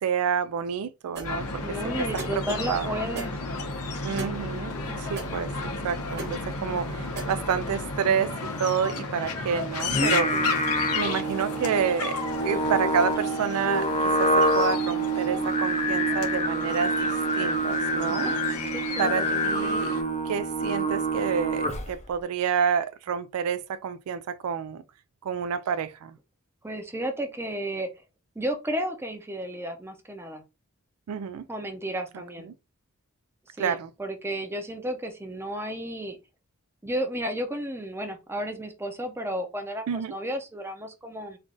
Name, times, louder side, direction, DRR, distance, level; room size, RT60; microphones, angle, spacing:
voice 1, 0.0-2.1 2.3-2.4 2.7-3.0 4.0-4.7 5.0-18.3 19.0-20.0 20.2-24.8 25.2-26.2 31.1-31.5 32.4-32.5 33.6-33.9 39.9-40.2, right 7 dB, 75° right, 0.3 m, -29 dB
sound 1, 1.2-20.0, left 4 dB, 85° left, 0.9 m, -34 dB
sound 2, 1.2-8.0, right 2 dB, 50° right, 0.9 m, -40 dB
voice 2, 1.6-3.3 4.6-5.1 10.3-10.6 18.1-18.4 18.7-19.4 26.6-27.9 28.4-30.4 31.5-32.5 33.6-36.2 36.8-41.4, equal, 10° right, 0.6 m, -33 dB
Singing, 9.8-22.0, right 1 dB, 30° left, 0.5 m, -26 dB
3.2 x 2.5 x 3.7 m
head